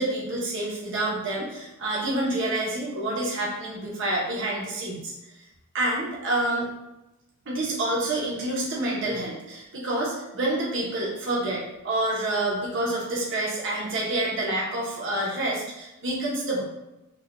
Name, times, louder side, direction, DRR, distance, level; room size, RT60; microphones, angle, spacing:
voice 1, 0.0-5.1 5.7-6.7 7.5-16.6, right 1 dB, 60° right, -5 dB, 1.0 m, -28 dB
4.7 x 2.4 x 2.6 m, 0.97 s
head